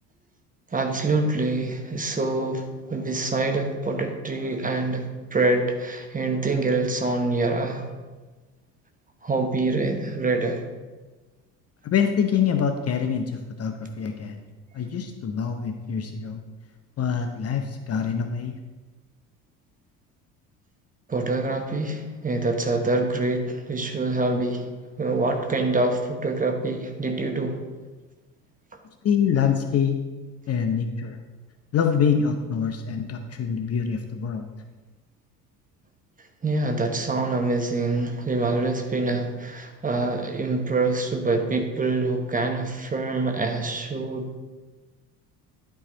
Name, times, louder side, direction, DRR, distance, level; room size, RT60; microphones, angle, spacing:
voice 1, 0.7-7.9 9.2-10.6 21.1-24.7 25.0-27.6 36.4-44.3, right 2 dB, 15° right, 4 dB, 1.2 m, -25 dB
voice 2, 11.8-14.4 14.7-16.4 17.0-18.6 29.0-30.0 30.5-31.2 31.7-34.5, left 7 dB, 30° left, 6 dB, 0.7 m, -25 dB
11.0 x 4.9 x 3.9 m, 1.3 s
figure-of-eight pair, 60°, 47 cm